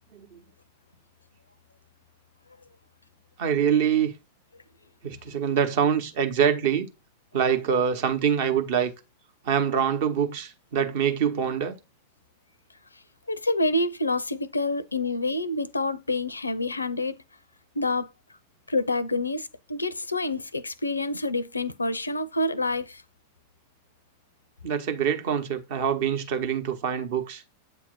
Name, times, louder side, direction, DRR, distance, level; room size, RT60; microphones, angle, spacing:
voice 1, 3.4-4.1 5.0-6.9 7.3-8.9 9.4-11.7 24.6-27.4, right 8 dB, 50° right, 0.9 m, -25 dB
voice 2, 13.3-17.2 17.8-18.1 18.7-23.0, left 2 dB, 80° left, 0.4 m, -27 dB
8.0 x 2.7 x 5.3 m
figure-of-eight pair, 90°, 0 cm